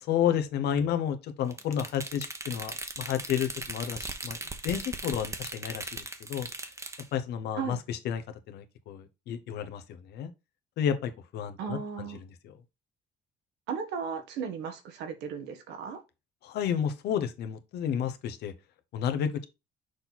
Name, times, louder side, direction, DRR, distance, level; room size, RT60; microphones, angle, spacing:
voice 1, 0.0-4.4 4.6-6.5 7.1-8.2 8.5-9.8 10.1-10.3 10.8-12.1 12.4-12.6 16.4-18.5 18.9-19.5, left 9 dB, 75° left, 1.1 m, -31 dB
sound 1, 1.5-7.1, right 3 dB, 15° right, 1.0 m, -38 dB
voice 2, 11.6-12.2 13.7-16.0, right 6 dB, 85° right, 1.5 m, -35 dB
6.5 x 4.3 x 4.0 m
cardioid pair, 110°, 17 cm